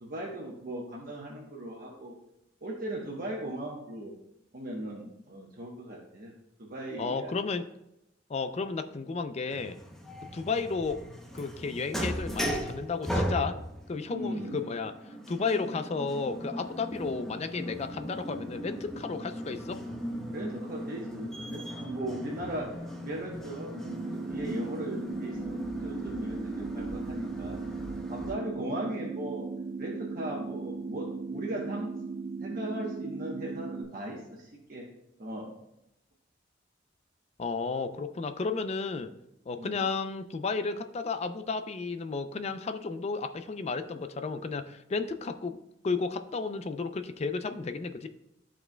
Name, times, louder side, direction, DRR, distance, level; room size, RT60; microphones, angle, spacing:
voice 1, 0.0-2.1 2.6-4.1 4.5-6.3 6.6-7.3 10.3-10.5 14.1-14.6 16.9-17.1 20.3-22.7 23.0-25.6 25.8-27.6 28.1-29.4 29.8-31.0 31.3-31.9 32.4-34.8 35.2-35.5 39.6-39.8, right 1 dB, 50° right, -3 dB, 1.0 m, -38 dB
voice 2, 7.0-7.7 8.3-9.8 10.2-11.0 11.3-13.6 13.9-14.9 15.3-19.8 37.4-39.1 39.5-48.1, left 4 dB, 35° left, 9 dB, 0.4 m, -33 dB
sound 1, 9.5-28.3, equal, ahead, 0.7 m, -38 dB
sound 2, 23.8-33.8, right 4 dB, 80° right, 0.5 m, -37 dB
13.0 x 4.4 x 2.2 m, 0.86 s
head